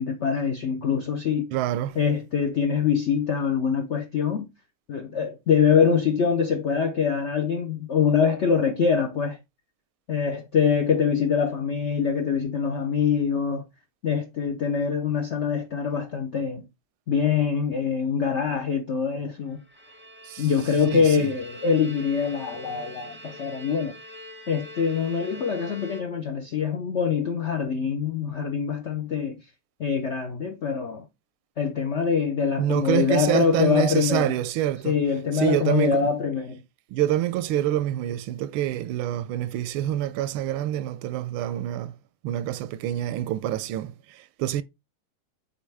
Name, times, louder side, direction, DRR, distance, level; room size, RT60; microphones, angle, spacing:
voice 1, 0.0-1.5 2.0-4.5 4.9-9.4 10.1-13.6 14.0-16.6 17.1-19.6 20.4-24.0 24.5-29.4 29.8-31.0 31.6-34.4 34.8-36.6, left 6 dB, 70° left, 0.6 m, -24 dB
voice 2, 1.5-2.0 20.2-20.5 20.9-21.3 32.6-35.0 35.3-36.1 36.9-41.9 42.2-44.6, right 12 dB, 90° right, 1.4 m, -26 dB
Bowed string instrument, 19.5-26.5, left 1 dB, 15° right, 0.4 m, -44 dB
7.4 x 4.3 x 3.4 m
omnidirectional pair, 2.2 m